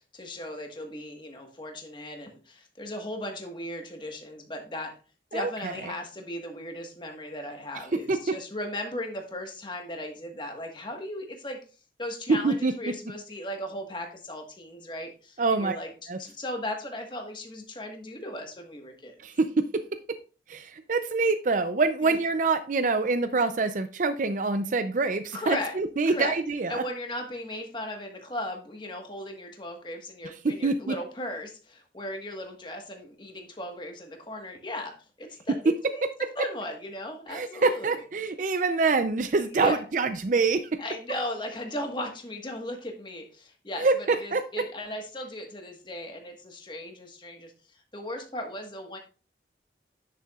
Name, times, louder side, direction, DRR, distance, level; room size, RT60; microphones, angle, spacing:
voice 1, 0.1-4.9 5.3-11.6 12.0-19.2 22.0-22.2 25.3-25.7 26.0-26.4 26.7-36.1 36.4-38.0 39.5-39.8 40.8-47.5 47.9-49.0, left 1 dB, 25° left, 3 dB, 1.4 m, -37 dB
voice 2, 5.3-5.7 7.9-8.3 12.3-12.7 15.4-15.8 16.1-16.2 19.2-19.8 20.5-26.8 30.4-30.9 35.7-35.8 37.3-40.8 43.8-44.4, right 3 dB, 45° right, 9 dB, 0.5 m, -25 dB
10.0 x 6.8 x 2.4 m, 0.35 s
head